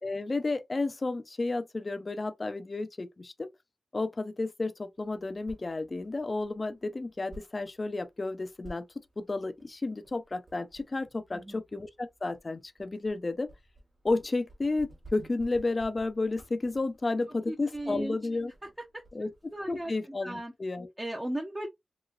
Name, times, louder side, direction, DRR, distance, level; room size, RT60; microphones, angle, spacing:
voice 1, 0.0-3.5 3.9-8.9 9.2-13.5 14.0-18.5 19.1-19.3 19.7-20.9, left 3 dB, 40° left, 0.4 m, -32 dB
sound 1, 4.9-19.9, right 1 dB, 55° right, 1.1 m, -55 dB
voice 2, 17.5-18.2 18.8-20.5 21.0-21.7, right 1 dB, 20° right, 0.6 m, -37 dB
3.0 x 2.9 x 2.3 m
wide cardioid pair, 85°, 0 cm